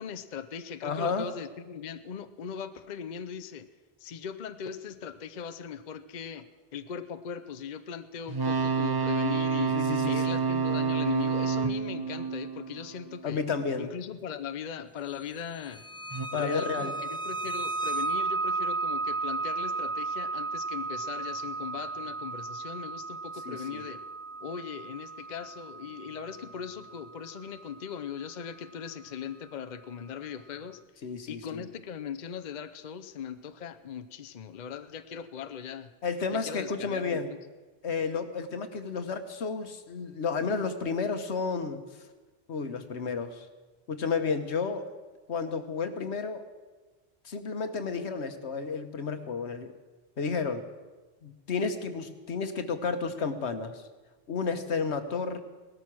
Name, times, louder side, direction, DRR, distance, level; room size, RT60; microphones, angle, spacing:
voice 1, 0.0-3.7 4.0-6.4 6.7-9.8 10.1-13.4 13.8-15.8 16.3-24.0 24.4-30.8 31.3-35.9 36.3-37.4, left 7 dB, 50° left, 10 dB, 0.7 m, -39 dB
voice 2, 0.8-1.3 9.7-10.4 13.2-13.9 16.3-16.9 23.4-23.8 31.0-31.6 36.0-37.3 37.8-41.8 42.5-43.5 43.9-44.9 45.3-46.4 47.2-49.7 50.2-50.7 51.2-53.8 54.3-55.4, left 5 dB, 85° left, 9 dB, 1.4 m, -31 dB
sound 1, 8.3-13.3 16.1-16.3, right 5 dB, 25° right, 0.7 m, -28 dB
sound 2, 15.7-28.3, right 3 dB, 5° left, 0.4 m, -34 dB
18.0 x 13.0 x 6.1 m, 1.3 s
omnidirectional pair, 1.1 m